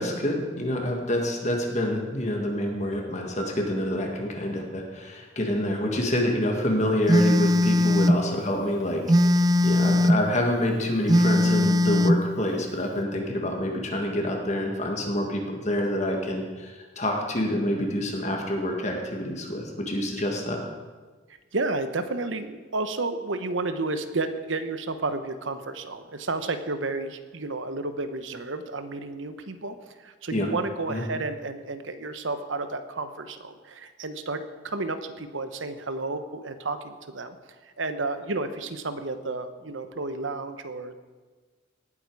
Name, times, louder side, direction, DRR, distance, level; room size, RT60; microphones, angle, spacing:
voice 1, 0.0-9.0 9.3-20.6 30.3-30.5 30.9-31.0, left 1 dB, 35° left, 1 dB, 1.8 m, -27 dB
Telephone, 7.1-8.2 9.1-10.2 11.1-12.2, left 1 dB, 20° right, 0.4 m, -19 dB
voice 2, 21.5-29.7 30.0-37.4 37.8-40.9, right 3 dB, 80° right, 9 dB, 1.0 m, -31 dB
18.5 x 8.6 x 4.8 m, 1.4 s
head